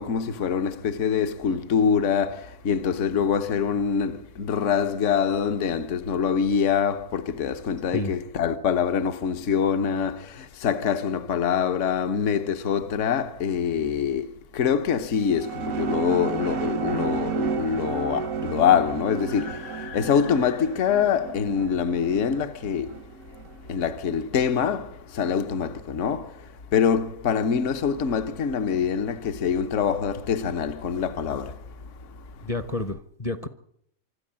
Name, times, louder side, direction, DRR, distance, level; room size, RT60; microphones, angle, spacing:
voice 1, 0.0-23.0 23.7-32.5, left 7 dB, 60° left, 1.3 m, -25 dB
sound 1, 15.1-23.8, right 5 dB, 80° right, 1.4 m, -32 dB
voice 2, 32.4-33.5, left 2 dB, 30° left, 0.8 m, -30 dB
25.0 x 13.0 x 8.7 m
omnidirectional pair, 1.5 m